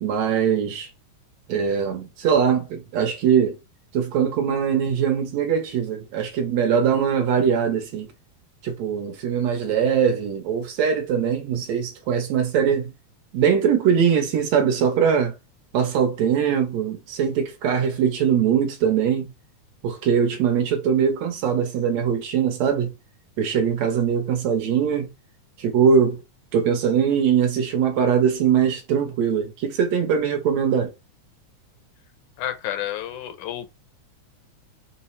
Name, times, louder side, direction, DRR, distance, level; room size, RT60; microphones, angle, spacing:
voice 1, 0.0-0.9 1.5-3.6 3.9-8.1 8.6-12.9 13.3-15.4 15.7-19.3 19.8-22.9 23.4-25.1 25.6-26.2 26.5-30.9, right 7 dB, 70° right, 1.9 m, -21 dB
voice 2, 32.4-33.7, left 12 dB, 85° left, 2.2 m, -30 dB
5.5 x 2.1 x 4.1 m
omnidirectional pair, 3.4 m